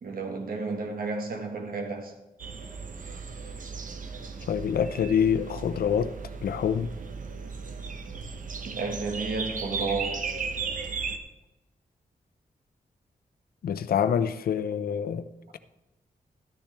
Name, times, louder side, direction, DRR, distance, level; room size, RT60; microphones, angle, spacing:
voice 1, 0.0-2.1 8.6-10.2, right 4 dB, 75° right, 1.7 m, -32 dB
sound 1, 2.4-11.2, right 5 dB, 60° right, 1.0 m, -36 dB
voice 2, 4.5-6.1 6.4-6.9 13.6-15.3, left 8 dB, 85° left, 0.6 m, -26 dB
13.0 x 10.5 x 3.4 m
cardioid pair, 85°, 15 cm